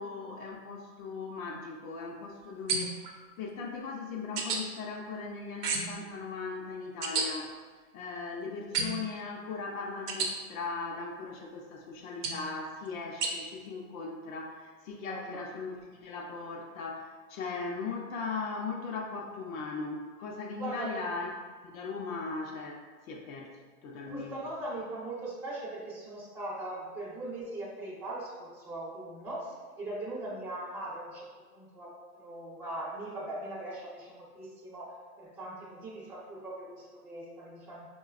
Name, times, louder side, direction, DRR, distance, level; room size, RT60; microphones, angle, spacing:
voice 1, 0.0-7.5 7.9-21.3 21.6-24.4, left 4 dB, 65° left, -1 dB, 0.6 m, -38 dB
sound 1, 2.7-3.1 4.4-4.6 5.6-6.0 7.0-7.3 8.7-9.1 10.1-10.3 12.2-12.5 13.2-13.3, right 5 dB, 85° right, 0.7 m, -31 dB
voice 2, 15.1-15.5 20.6-20.9 24.0-31.3 31.5-31.9 32.2-37.9, right 1 dB, 15° right, -9 dB, 0.4 m, -40 dB
4.0 x 2.2 x 2.4 m, 1.5 s
hypercardioid pair, 120°, 46 cm